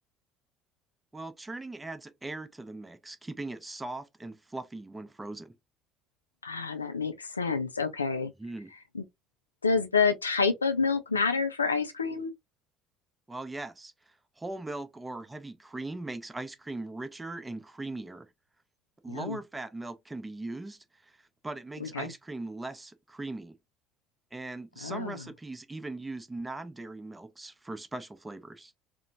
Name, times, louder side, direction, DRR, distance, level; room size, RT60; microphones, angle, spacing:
voice 1, 1.1-5.5 8.4-8.7 13.3-13.9 14.4-18.3 19.0-21.2 21.4-23.6 24.3-28.7, right 2 dB, 15° right, 0.6 m, -39 dB
voice 2, 6.4-8.3 8.9-9.0 9.6-12.3 19.1-19.4 21.8-22.1 24.8-25.2, left 5 dB, 85° left, 0.4 m, -28 dB
2.9 x 2.0 x 2.7 m
figure-of-eight pair, 60°, 0 cm